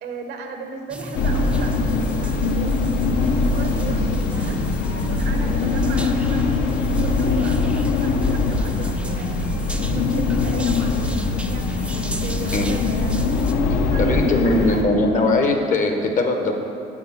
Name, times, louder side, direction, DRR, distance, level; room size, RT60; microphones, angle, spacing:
voice 1, 0.0-11.7 12.2-13.3 13.9-15.2, right 4 dB, 75° right, 4 dB, 0.8 m, -37 dB
sound 1, 0.9-13.5, right 1 dB, 5° right, 0.3 m, -37 dB
sound 2, 1.1-14.8, left 3 dB, 80° left, 0.6 m, -22 dB
voice 2, 14.0-16.5, left 2 dB, 50° left, 3 dB, 0.8 m, -20 dB
6.0 x 3.9 x 5.7 m, 2.7 s
cardioid pair, 110°, 17 cm